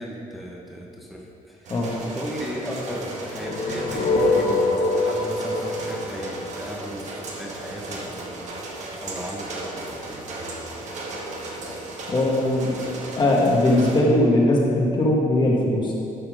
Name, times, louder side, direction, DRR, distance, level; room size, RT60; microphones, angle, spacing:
voice 1, 0.0-1.7 2.0-8.6 9.0-10.2, equal, ahead, -3 dB, 1.1 m, -36 dB
sound 1, 1.6-14.0, right 2 dB, 55° right, 1.7 m, -36 dB
sound 2, 3.2-7.3, left 2 dB, 60° left, 1.2 m, -24 dB
voice 2, 12.1-12.7 13.2-15.9, left 1 dB, 30° left, -3 dB, 1.7 m, -20 dB
11.5 x 5.8 x 5.2 m, 2.6 s
cardioid pair, 130°, 14 cm